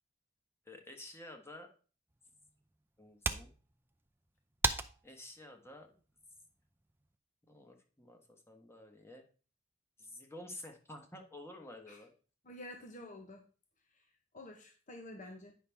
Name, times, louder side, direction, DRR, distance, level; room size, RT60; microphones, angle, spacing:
voice 1, 0.6-1.7 3.0-3.5 5.0-6.0 7.5-9.2 10.0-12.1, left 1 dB, 15° left, 4 dB, 1.5 m, -51 dB
sound 1, 2.1-7.2, right 3 dB, 10° right, 0.5 m, -40 dB
voice 2, 12.4-13.4 13.9-15.5, left 1 dB, 40° left, 3 dB, 1.1 m, -50 dB
9.5 x 5.9 x 3.5 m, 0.37 s
head